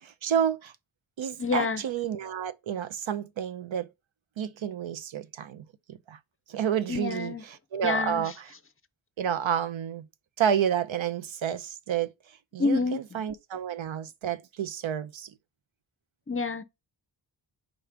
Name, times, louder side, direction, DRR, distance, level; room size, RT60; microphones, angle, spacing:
voice 1, 0.0-0.7 1.2-3.9 4.4-6.2 6.5-8.5 9.2-10.1 10.4-15.3, right 9 dB, 85° right, 0.8 m, -30 dB
voice 2, 1.4-1.8 6.9-7.4 7.8-8.3 12.6-13.0 16.3-16.6, left 4 dB, 30° left, 0.6 m, -27 dB
5.0 x 3.9 x 5.9 m
wide cardioid pair, 160°, 45 cm